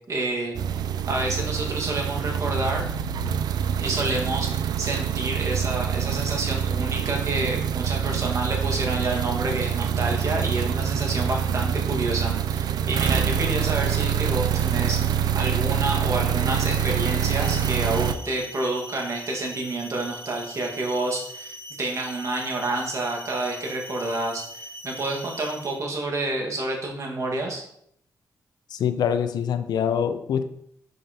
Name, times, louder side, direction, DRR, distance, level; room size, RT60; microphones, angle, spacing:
voice 1, 0.1-2.9 3.8-27.6, right 2 dB, 45° right, 0 dB, 1.8 m, -29 dB
sound 1, 0.5-18.1, right 8 dB, 75° right, 0.4 m, -25 dB
sound 2, 16.3-25.9, equal, 40° left, 2.4 m, -41 dB
voice 2, 28.7-30.4, left 8 dB, 80° left, 10 dB, 0.5 m, -24 dB
6.3 x 5.2 x 2.9 m, 0.71 s
cardioid pair, 75°, 7 cm